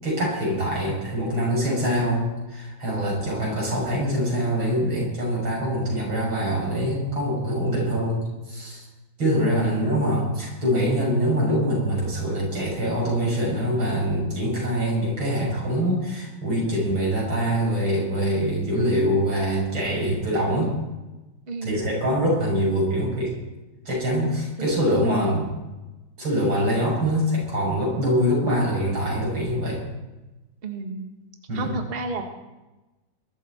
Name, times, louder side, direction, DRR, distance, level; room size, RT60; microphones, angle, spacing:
voice 1, 0.0-8.8 9.2-20.7 21.6-23.3 23.9-25.5 26.2-29.9 31.5-31.7, equal, 90° right, -3 dB, 7.8 m, -24 dB
voice 2, 3.1-3.6 9.6-9.9 21.5-21.9 24.6-25.4 30.6-31.1 31.5-32.2, right 3 dB, 30° right, 3 dB, 1.7 m, -33 dB
21.5 x 13.0 x 4.4 m, 1.1 s
omnidirectional pair, 2.1 m